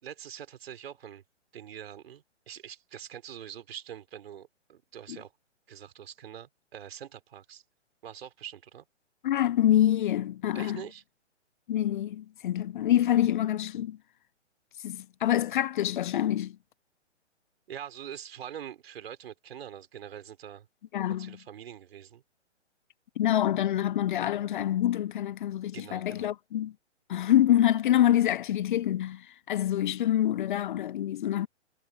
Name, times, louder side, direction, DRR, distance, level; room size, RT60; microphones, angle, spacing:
voice 1, 0.0-1.2 1.5-5.3 5.7-7.6 8.0-8.9 10.5-11.0 17.7-20.7 21.1-22.2 25.6-26.3, right 9 dB, 55° right, 4.5 m, -44 dB
voice 2, 9.2-10.8 11.7-14.0 14.8-16.6 20.9-21.4 23.2-26.7 27.1-31.5, left 12 dB, 45° left, 0.9 m, -26 dB
hypercardioid pair, 135°, 35 cm